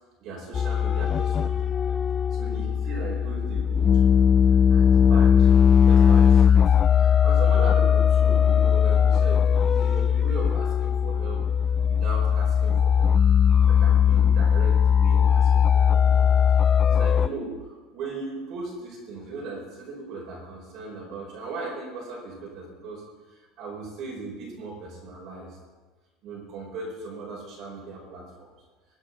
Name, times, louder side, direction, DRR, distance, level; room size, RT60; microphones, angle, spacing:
voice 1, 0.2-1.6 2.3-4.0 4.5-5.5 5.9-11.5 11.9-13.1 13.7-16.4 16.9-25.6 26.2-28.5, right 3 dB, 50° right, -4 dB, 5.2 m, -38 dB
sound 1, 0.5-17.3, left 7 dB, 25° left, 0.3 m, -19 dB
21.0 x 9.9 x 4.0 m, 1.3 s
supercardioid pair, 135°, 0 cm